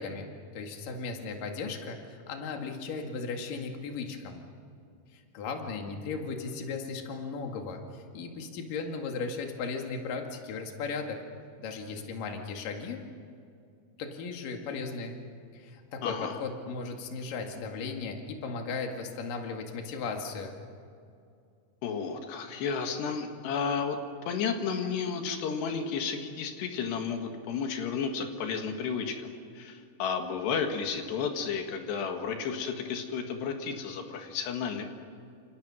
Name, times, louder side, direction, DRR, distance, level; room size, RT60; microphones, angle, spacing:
voice 1, 0.0-4.4 5.1-11.2 11.6-13.0 14.0-15.2 15.5-20.6, left 4 dB, 60° left, 3 dB, 3.6 m, -36 dB
voice 2, 16.0-16.4 21.8-24.0 24.3-34.9, left 6 dB, 85° left, 4 dB, 4.0 m, -32 dB
29.5 x 28.5 x 6.4 m, 2.4 s
omnidirectional pair, 4.7 m